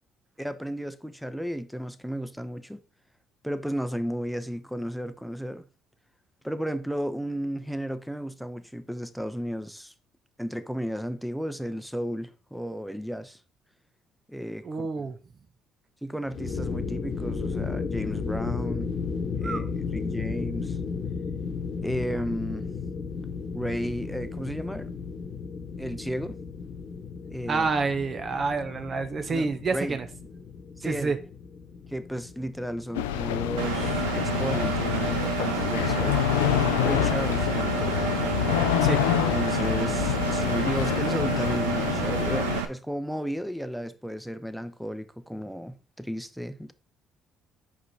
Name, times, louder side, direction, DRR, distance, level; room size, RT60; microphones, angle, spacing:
voice 1, 0.4-2.8 3.4-5.6 6.4-9.9 10.4-13.4 14.3-15.1 16.0-18.9 19.3-20.8 21.8-22.7 23.5-24.9 25.8-26.4 27.3-27.7 29.3-30.0 30.8-31.1 31.9-36.2 36.8-38.1 39.3-46.7, equal, ahead, 0.8 m, -33 dB
voice 2, 14.6-15.2 19.4-19.6 27.5-30.1 30.8-31.2 38.8-39.0, right 4 dB, 45° right, 0.8 m, -28 dB
sound 1, 16.3-35.1, left 5 dB, 55° left, 1.1 m, -35 dB
sound 2, 32.9-42.6, left 12 dB, 85° left, 0.4 m, -27 dB
Engine, 33.6-42.7, right 8 dB, 85° right, 0.7 m, -30 dB
5.2 x 5.0 x 4.1 m
hypercardioid pair, 55°, 0 cm